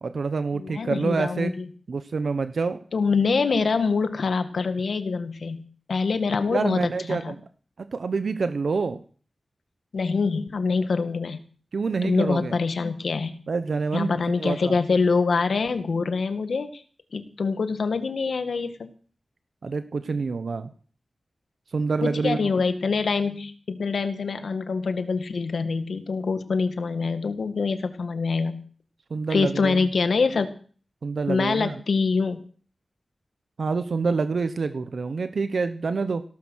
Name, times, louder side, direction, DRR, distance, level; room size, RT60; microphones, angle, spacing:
voice 1, 0.0-1.5 1.9-2.8 6.5-7.4 7.8-9.0 11.7-12.6 13.5-14.1 14.4-14.8 19.6-20.7 21.7-22.5 29.1-29.9 31.0-31.8 33.6-36.2, right 4 dB, 75° right, 10 dB, 1.1 m, -27 dB
voice 2, 0.5-1.7 2.9-5.6 5.9-7.3 9.9-11.4 12.0-13.4 13.9-16.8 17.1-18.9 22.0-28.6 29.3-30.5 31.3-32.4, left 4 dB, 85° left, 10 dB, 1.8 m, -25 dB
17.5 x 12.5 x 6.4 m, 0.43 s
wide cardioid pair, 105°, 0 cm